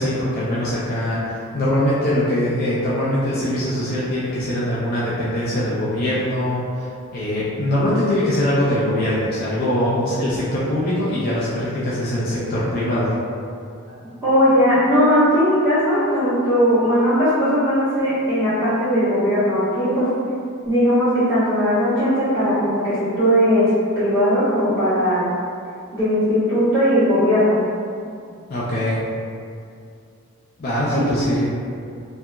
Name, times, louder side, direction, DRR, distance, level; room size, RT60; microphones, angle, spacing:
voice 1, 0.0-13.1 28.5-29.0 30.6-31.4, left 1 dB, 45° left, -8 dB, 0.4 m, -22 dB
voice 2, 14.0-20.1 20.6-23.7 24.0-25.2 25.9-27.6 30.9-31.1, equal, 10° right, -17 dB, 1.4 m, -18 dB
2.8 x 2.3 x 2.3 m, 2.3 s
head